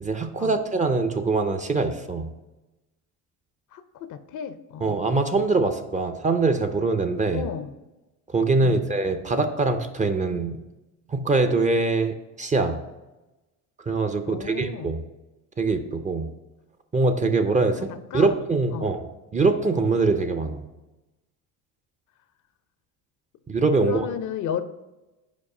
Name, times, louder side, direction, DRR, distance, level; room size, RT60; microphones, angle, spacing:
voice 1, 0.0-2.3 4.8-7.4 8.3-10.6 11.1-12.8 13.9-15.0 15.6-16.3 16.9-19.1 19.3-20.6 23.5-24.1, right 3 dB, 20° right, 7 dB, 0.5 m, -23 dB
voice 2, 3.7-4.9 7.3-7.7 8.6-8.8 14.3-14.9 17.8-18.3 18.7-18.9 23.8-24.6, left 9 dB, 50° left, 12 dB, 0.6 m, -33 dB
5.2 x 4.7 x 4.8 m, 1.1 s
supercardioid pair, 85°, 39 cm